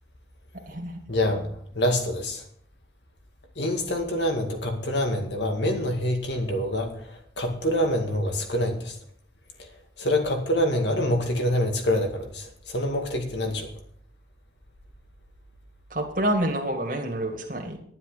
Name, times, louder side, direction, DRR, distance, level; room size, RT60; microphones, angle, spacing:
voice 1, 1.1-2.4 3.6-9.0 9.6-9.7 10.0-13.7, left 1 dB, 75° left, 4 dB, 2.1 m, -26 dB
voice 2, 15.9-17.8, right 1 dB, 45° right, 2 dB, 2.0 m, -27 dB
11.0 x 9.5 x 5.1 m, 0.63 s
head